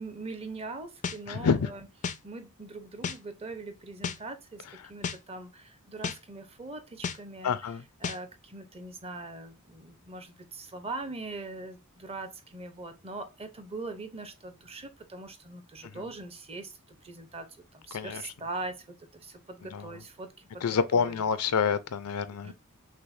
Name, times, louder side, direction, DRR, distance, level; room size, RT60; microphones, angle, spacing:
voice 1, 0.0-1.9 2.2-7.6 8.0-21.2 22.4-22.5, right 3 dB, 25° right, 0.6 m, -41 dB
sound 1, 1.0-1.2 2.0-2.2 3.0-3.2 4.0-4.2 5.0-5.2 6.0-6.2 7.0-7.2 8.0-8.2, left 6 dB, 35° left, 0.3 m, -32 dB
voice 2, 1.3-1.7 7.4-7.8 15.8-16.0 17.9-18.3 19.7-19.9 20.6-22.5, left 6 dB, 90° left, 0.5 m, -28 dB
5.9 x 2.1 x 2.5 m
head